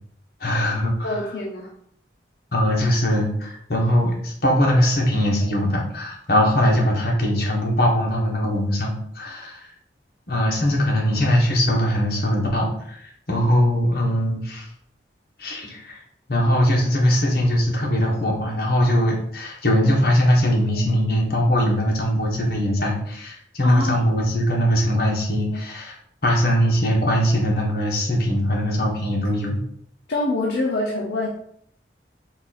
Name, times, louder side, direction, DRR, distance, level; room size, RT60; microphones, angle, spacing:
voice 1, 0.4-1.2 2.5-9.6 10.3-14.7 15.4-16.0 16.3-25.9 26.2-29.6, equal, 55° left, -2 dB, 1.1 m, -21 dB
voice 2, 1.0-1.7 20.7-20.8 22.8-22.9 23.6-24.1 25.5-25.6 30.1-31.3, left 2 dB, 75° left, -3 dB, 0.6 m, -25 dB
4.1 x 2.4 x 4.0 m, 0.68 s
head